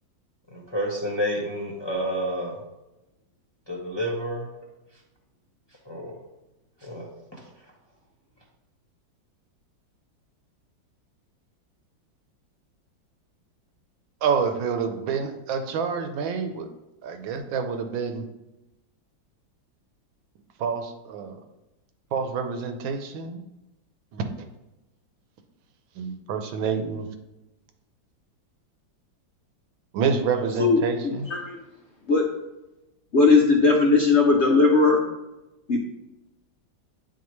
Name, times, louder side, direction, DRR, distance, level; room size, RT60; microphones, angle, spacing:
voice 1, 0.5-2.5 3.7-4.4 5.8-6.1 6.8-7.4, equal, 15° left, -4 dB, 0.9 m, -29 dB
voice 2, 14.2-16.7 17.0-18.2 20.6-21.4 22.1-23.4 24.1-24.2 26.0-27.1 29.9-31.3, right 6 dB, 80° right, 7 dB, 1.5 m, -27 dB
voice 3, 33.1-35.0 35.7-35.8, left 3 dB, 65° left, 0 dB, 0.6 m, -18 dB
9.4 x 4.3 x 3.1 m, 0.98 s
omnidirectional pair, 2.1 m